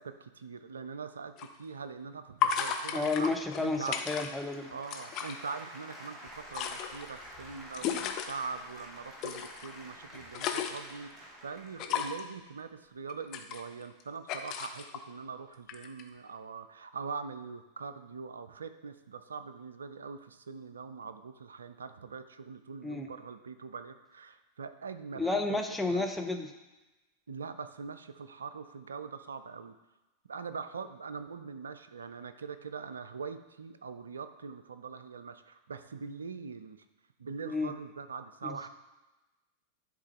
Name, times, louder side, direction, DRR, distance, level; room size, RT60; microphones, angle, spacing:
voice 1, 0.0-3.3 3.6-4.0 4.7-26.1 27.3-29.7 30.3-36.8 37.2-38.7, right 5 dB, 70° right, 11 dB, 0.4 m, -42 dB
sound 1, 1.4-1.5 2.4-4.5 4.8-5.3 6.3-8.3 9.2-9.7 10.1-11.0 11.8-12.3 13.1-14.0 14.3-15.0 15.7-16.0, left 9 dB, 40° left, 0.6 m, -34 dB
voice 2, 2.9-4.7 22.8-23.1 25.1-26.5 37.4-37.7 38.4-38.7, left 3 dB, 5° left, 3 dB, 0.7 m, -32 dB
sound 2, 4.1-12.1, equal, 20° right, 1.4 m, -50 dB
11.0 x 3.7 x 3.2 m, 1.1 s
figure-of-eight pair, 90°, 0 cm